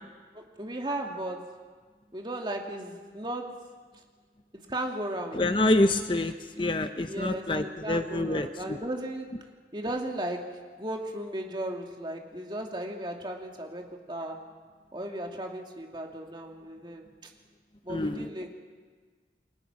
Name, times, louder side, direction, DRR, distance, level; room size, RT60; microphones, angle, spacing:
voice 1, 0.3-1.5 2.1-3.7 3.9-4.0 4.5-5.4 7.1-14.5 14.9-17.3 17.8-18.5, right 1 dB, 25° right, 2 dB, 2.5 m, -36 dB
voice 2, 5.4-8.8 17.9-18.3, left 2 dB, 30° left, 8 dB, 0.8 m, -27 dB
29.0 x 24.0 x 6.0 m, 1.5 s
head